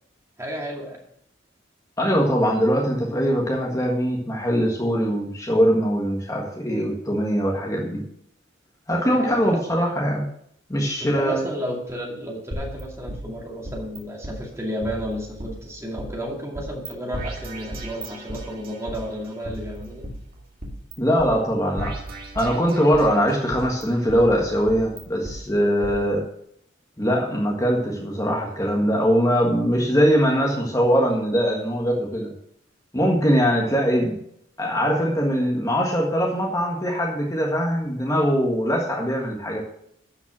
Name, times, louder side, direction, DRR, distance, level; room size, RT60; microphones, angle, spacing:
voice 1, 0.4-1.0 9.1-9.6 11.0-20.0, equal, 15° right, -1 dB, 2.3 m, -32 dB
voice 2, 2.0-8.0 8.9-10.2 10.7-11.4 21.0-21.9 22.3-26.2 27.0-32.3 32.9-34.2 34.6-39.6, equal, 15° left, -1 dB, 1.5 m, -22 dB
sound 1, 12.5-14.0 14.2-14.3 14.8-16.1 16.5-16.9 17.1-19.0 19.4-20.9 21.2-21.3 21.8-23.1 23.5-25.4 25.8-25.9, right 1 dB, 50° right, 2.1 m, -35 dB
12.0 x 5.7 x 6.1 m, 0.69 s
head